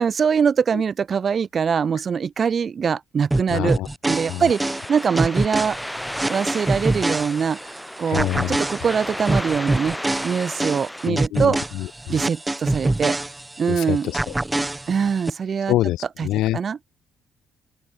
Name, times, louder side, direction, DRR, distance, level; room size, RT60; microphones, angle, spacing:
voice 1, 0.0-3.8 4.1-5.8 6.3-10.0 10.2-11.6 12.1-13.2 13.6-14.1 14.9-15.7 16.2-16.3 16.5-16.8, right 6 dB, 45° right, 0.8 m, -23 dB
sound 1, 3.3-7.8 8.1-13.8 14.1-15.3, right 2 dB, 15° right, 4.7 m, -25 dB
voice 2, 3.5-3.9 4.3-4.5 8.1-8.6 11.1-12.1 13.7-14.7 15.7-16.6, left 15 dB, 90° left, 1.6 m, -26 dB
sound 2, 4.5-11.1, equal, 5° left, 3.6 m, -33 dB
open air
cardioid pair, 90°, 0 cm